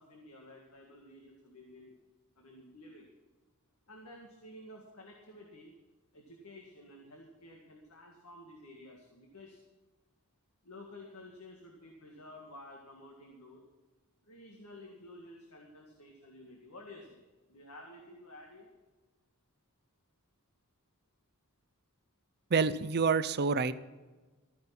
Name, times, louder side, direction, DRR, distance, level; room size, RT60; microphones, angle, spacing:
voice 1, 0.0-1.9 2.4-3.1 3.9-5.7 6.1-9.6 10.6-13.6 14.2-17.2 17.5-18.7, left 1 dB, 90° left, 1 dB, 1.9 m, -52 dB
voice 2, 22.5-23.7, right 5 dB, 50° right, 13 dB, 0.6 m, -27 dB
14.0 x 9.4 x 5.9 m, 1.3 s
head